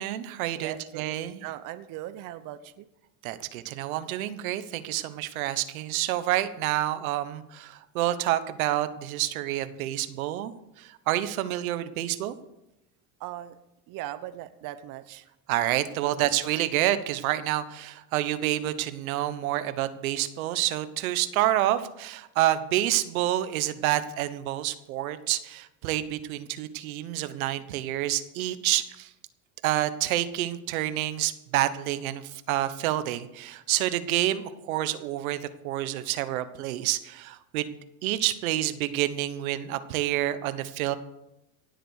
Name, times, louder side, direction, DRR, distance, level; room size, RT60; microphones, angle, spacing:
voice 1, 0.0-1.4 3.2-10.5 10.8-12.3 15.5-29.1 29.6-37.8 38.0-40.9, right 14 dB, 80° right, 12 dB, 1.2 m, -28 dB
voice 2, 0.5-1.1 1.4-2.9 13.2-13.6 13.9-15.3 16.0-16.3 33.7-33.8 34.5-34.6, right 13 dB, 50° right, 11 dB, 0.9 m, -39 dB
17.0 x 7.8 x 6.5 m, 0.87 s
supercardioid pair, 115°, 42 cm